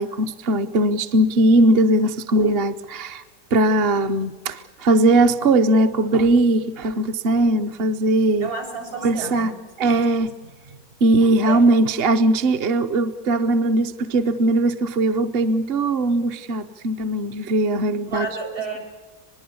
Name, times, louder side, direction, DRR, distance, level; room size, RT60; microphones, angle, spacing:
voice 1, 0.0-3.2 3.5-8.5 9.0-9.5 9.8-10.3 11.0-18.3, right 2 dB, 45° right, 7 dB, 1.0 m, -19 dB
voice 2, 8.4-10.0 11.4-11.6 18.1-18.8, right 4 dB, 75° right, 4 dB, 7.4 m, -31 dB
23.5 x 21.5 x 7.0 m, 1.3 s
omnidirectional pair, 1.5 m